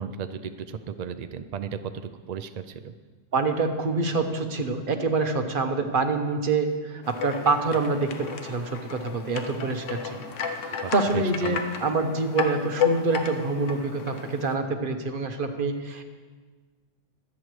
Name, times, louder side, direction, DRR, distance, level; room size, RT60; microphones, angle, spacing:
voice 1, 0.0-2.9 10.8-11.6, right 7 dB, 70° right, 9 dB, 0.4 m, -35 dB
voice 2, 3.3-10.2 10.6-16.0, right 3 dB, 45° right, 6 dB, 1.1 m, -26 dB
sound 1, 7.0-14.5, left 6 dB, 75° left, 1.2 m, -32 dB
23.5 x 8.5 x 3.2 m, 1.4 s
omnidirectional pair, 1.3 m